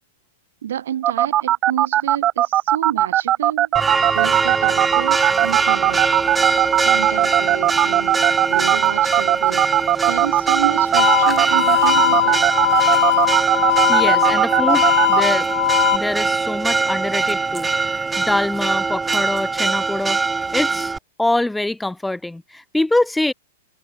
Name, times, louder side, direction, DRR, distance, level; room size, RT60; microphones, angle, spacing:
voice 1, 0.6-3.8 4.1-6.1 6.8-9.7 10.0-12.5, right 10 dB, 70° right, 4.4 m, -29 dB
sound 1, 1.0-15.2, right 13 dB, 35° right, 0.9 m, -17 dB
Church bell, 3.7-21.0, right 4 dB, 10° right, 1.9 m, -22 dB
sound 2, 11.0-16.0, left 14 dB, 60° left, 0.5 m, -19 dB
voice 2, 13.9-15.5 15.9-20.2 20.5-23.3, left 2 dB, 5° left, 0.7 m, -24 dB
hypercardioid pair, 110°, 0 cm